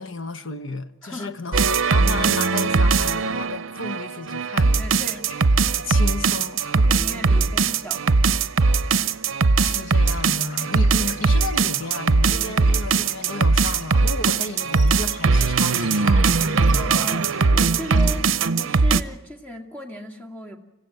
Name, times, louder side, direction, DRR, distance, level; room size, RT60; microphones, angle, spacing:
voice 1, 0.0-5.2 5.6-6.9 7.3-7.4 9.6-17.2, left 3 dB, 65° left, 1.1 m, -33 dB
sound 1, 1.5-19.0, right 4 dB, 70° right, 0.7 m, -20 dB
voice 2, 4.6-5.2 6.8-8.3 9.1-9.2 16.7-20.6, equal, 10° left, 2.1 m, -36 dB
sound 2, 9.9-18.1, left 1 dB, 40° left, 5.4 m, -45 dB
26.5 x 15.5 x 7.9 m
head